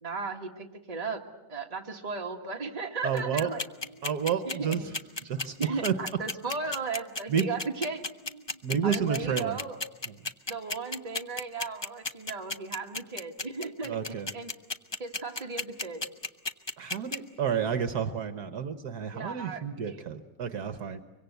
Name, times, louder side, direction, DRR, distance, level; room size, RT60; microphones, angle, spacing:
voice 1, 0.0-1.2 1.5-3.6 3.9-4.0 4.5-4.8 5.6-9.8 10.5-14.5 15.0-16.0 19.1-20.0, right 4 dB, 20° right, 2 dB, 1.7 m, -36 dB
voice 2, 3.0-3.5 4.0-4.9 5.2-5.9 7.3-7.5 8.6-9.6 10.1-10.2 13.8-14.3 16.8-21.0, right 7 dB, 65° right, 10 dB, 1.5 m, -30 dB
sound 1, 3.2-17.2, left 3 dB, 30° left, 0.4 m, -32 dB
24.5 x 24.5 x 8.0 m, 1.0 s
omnidirectional pair, 1.9 m